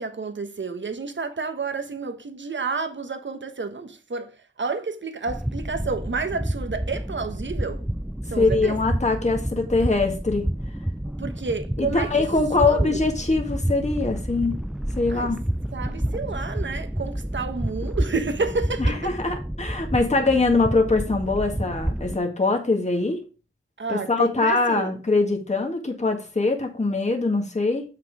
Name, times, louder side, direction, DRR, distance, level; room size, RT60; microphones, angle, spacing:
voice 1, 0.0-7.8 8.3-8.8 11.2-12.1 12.6-13.0 15.1-15.3 15.7-19.1 23.8-24.9, right 4 dB, 65° right, 1.3 m, -30 dB
sound 1, 5.3-22.2, right 1 dB, 5° right, 0.3 m, -29 dB
voice 2, 8.4-10.5 11.8-14.6 15.0-15.4 18.8-23.2 23.9-27.8, left 3 dB, 35° left, 1.8 m, -23 dB
7.6 x 5.9 x 4.9 m
wide cardioid pair, 80°, 21 cm